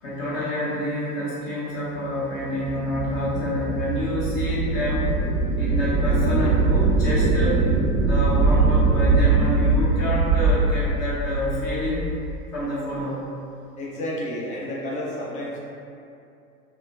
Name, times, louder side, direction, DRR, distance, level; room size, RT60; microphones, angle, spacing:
voice 1, 0.0-5.2 5.6-7.6 8.0-12.0 12.5-13.3, left 1 dB, 35° left, -8 dB, 0.8 m, -28 dB
sound 1, 2.4-12.4, right 3 dB, 55° right, 0.6 m, -22 dB
voice 2, 13.8-15.6, left 1 dB, 15° left, -5 dB, 0.5 m, -31 dB
5.7 x 2.1 x 2.3 m, 2.6 s
figure-of-eight pair, 85°, 46 cm